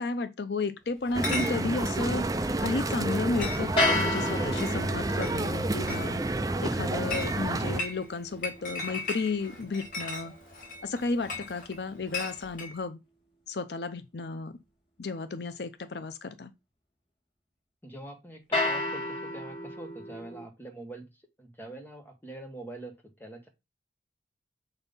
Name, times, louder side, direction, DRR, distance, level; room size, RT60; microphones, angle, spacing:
voice 1, 0.0-2.3 2.6-6.2 6.6-10.3 10.8-13.0 13.5-14.6 15.0-16.5, left 3 dB, 75° left, 0.6 m, -33 dB
Chatter / Chink clink, 1.0-12.7, left 3 dB, 50° left, 2.2 m, -39 dB
sound 1, 1.1-7.8, right 2 dB, 20° right, 0.5 m, -30 dB
sound 2, 3.8-9.9 18.5-20.5, left 2 dB, 30° left, 2.0 m, -33 dB
voice 2, 17.8-21.1 21.4-23.5, right 1 dB, 10° left, 1.5 m, -44 dB
7.0 x 4.0 x 5.4 m
head